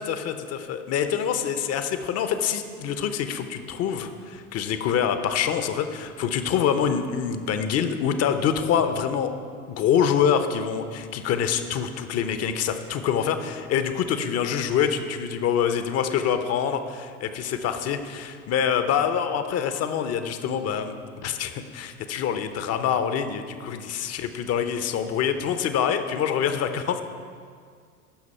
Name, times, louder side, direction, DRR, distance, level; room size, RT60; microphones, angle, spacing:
voice 1, 0.0-9.3 9.7-20.9 21.2-27.0, left 8 dB, 35° left, 9 dB, 0.9 m, -25 dB
16.0 x 6.2 x 4.4 m, 2.1 s
figure-of-eight pair, 80°, 44 cm